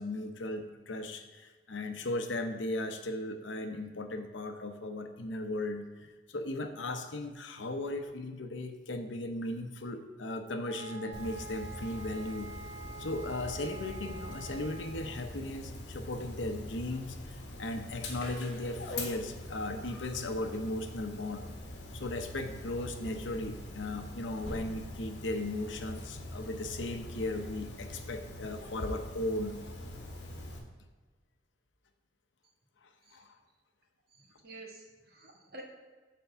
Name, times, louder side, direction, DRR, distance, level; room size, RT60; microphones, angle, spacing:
voice 1, 0.0-12.5 13.0-21.5 21.9-29.7 32.8-33.4, left 2 dB, 90° left, 6 dB, 0.8 m, -37 dB
sound 1, 10.7-15.4, right 4 dB, 30° right, 1.1 m, -47 dB
Dog, 11.1-30.6, left 1 dB, 65° left, 1.4 m, -43 dB
voice 2, 34.1-35.6, right 1 dB, 55° right, -1 dB, 1.6 m, -50 dB
6.9 x 4.6 x 6.8 m, 1.4 s
head